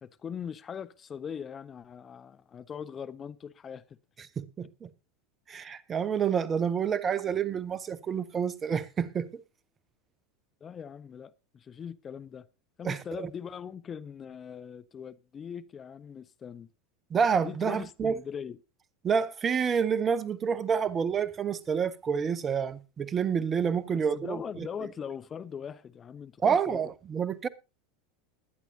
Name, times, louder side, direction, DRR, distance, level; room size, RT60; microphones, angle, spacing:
voice 1, 0.0-4.0 10.6-12.5 12.8-16.7 17.4-18.6 24.1-26.8, left 7 dB, 30° left, 0.6 m, -41 dB
voice 2, 4.4-4.9 5.5-9.3 12.8-13.3 17.1-18.2 19.0-24.7 26.4-27.5, right 7 dB, 25° right, 0.9 m, -28 dB
21.0 x 10.0 x 2.7 m
figure-of-eight pair, 80°, 0 cm